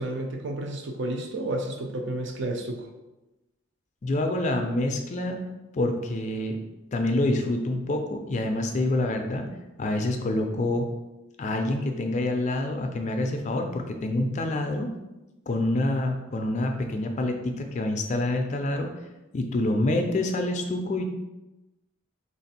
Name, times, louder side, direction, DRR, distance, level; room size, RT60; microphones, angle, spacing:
voice 1, 0.0-2.9, right 1 dB, 60° right, 3 dB, 0.5 m, -31 dB
voice 2, 4.0-5.4 5.7-6.6 6.9-9.5 9.8-10.9 11.4-14.9 15.5-18.9 19.3-21.0, left 1 dB, 35° left, 4 dB, 0.4 m, -27 dB
3.3 x 2.5 x 4.1 m, 1.0 s
head